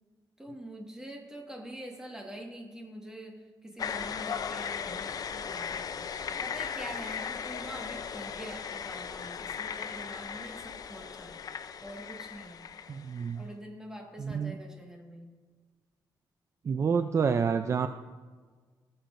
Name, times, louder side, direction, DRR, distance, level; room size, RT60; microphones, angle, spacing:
voice 1, 0.4-6.0 6.4-11.5 11.8-12.6 13.4-15.3, equal, 10° right, 1 dB, 1.6 m, -45 dB
sound 1, 3.8-13.4, left 7 dB, 50° left, 0.5 m, -37 dB
voice 2, 12.9-13.4 14.2-14.5 16.7-17.9, right 6 dB, 40° right, 9 dB, 0.4 m, -28 dB
18.5 x 7.6 x 2.6 m, 1.5 s
cardioid pair, 120°, 8 cm